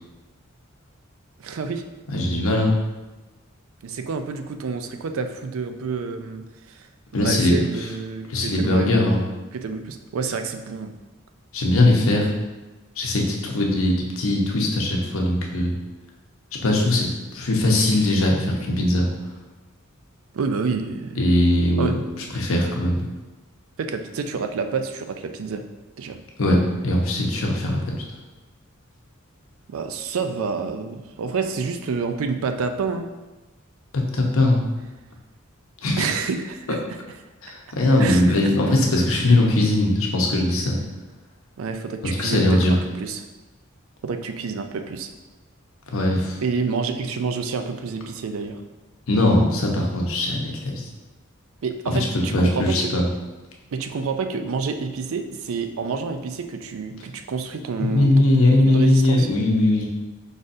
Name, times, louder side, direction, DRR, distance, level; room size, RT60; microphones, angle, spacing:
voice 1, 1.4-1.8 3.8-6.9 7.2-9.0 9.5-10.9 20.3-21.3 21.8-21.9 23.8-25.7 26.0-26.2 29.7-33.1 36.0-37.0 38.0-38.5 41.6-42.6 43.0-43.3 44.0-45.1 46.4-48.6 51.6-52.9 53.7-59.3, right 5 dB, 75° right, 7 dB, 0.4 m, -28 dB
voice 2, 2.1-2.7 7.1-7.5 8.3-9.2 11.5-12.3 13.0-15.7 16.6-17.1 17.3-19.1 21.2-21.9 22.3-23.1 26.4-26.6 26.8-27.9 33.9-34.6 35.8-36.0 37.4-40.8 42.2-42.8 45.9-46.4 49.1-50.8 52.3-53.0 57.8-59.8, left 1 dB, 75° left, 0 dB, 0.8 m, -20 dB
5.0 x 4.1 x 2.5 m, 1.1 s
head